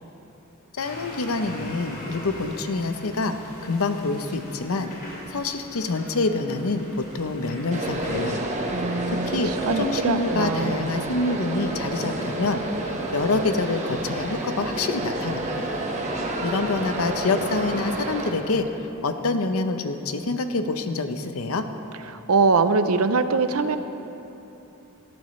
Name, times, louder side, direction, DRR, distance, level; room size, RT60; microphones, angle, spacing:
voice 1, 0.7-3.4 3.6-8.5 9.1-15.7 16.1-21.6, left 3 dB, 80° left, 8 dB, 0.8 m, -26 dB
sound 1, 0.8-8.2, left 1 dB, 45° left, 2.8 m, -41 dB
sound 2, 7.7-18.3, right 2 dB, 35° right, 1.2 m, -30 dB
voice 2, 8.7-10.9 22.1-23.8, right 4 dB, 85° right, 10 dB, 0.7 m, -23 dB
18.5 x 13.5 x 3.2 m, 3.0 s
head